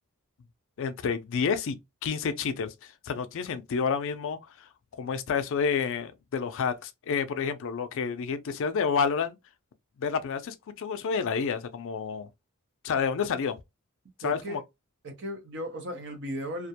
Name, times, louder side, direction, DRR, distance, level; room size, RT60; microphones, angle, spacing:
voice 1, 0.8-4.7 5.0-9.4 10.0-12.3 12.8-13.5 14.2-14.6, left 6 dB, 60° left, 0.4 m, -29 dB
voice 2, 14.2-14.6 15.0-16.7, equal, 55° right, 0.7 m, -36 dB
2.4 x 2.1 x 2.7 m
head